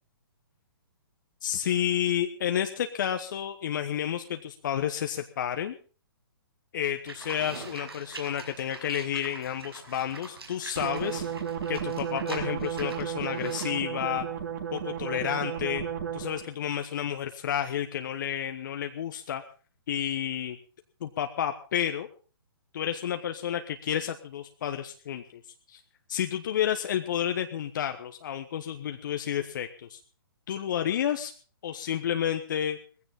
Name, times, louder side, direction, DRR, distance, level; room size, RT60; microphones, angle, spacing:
voice 1, 1.4-5.8 6.7-11.3 11.7-14.3 14.7-15.8 16.1-19.4 19.9-20.6 21.0-22.1 22.7-25.4 25.7-25.8 26.1-30.0 30.5-31.3 31.6-32.8, left 9 dB, 55° left, 6 dB, 1.2 m, -30 dB
Livestock farm animals working animals, 7.1-13.8, right 3 dB, 85° right, 5.9 m, -44 dB
sound 1, 10.8-16.5, right 8 dB, 55° right, 3.3 m, -33 dB
19.5 x 15.5 x 3.7 m, 0.38 s
figure-of-eight pair, 130°, 13 cm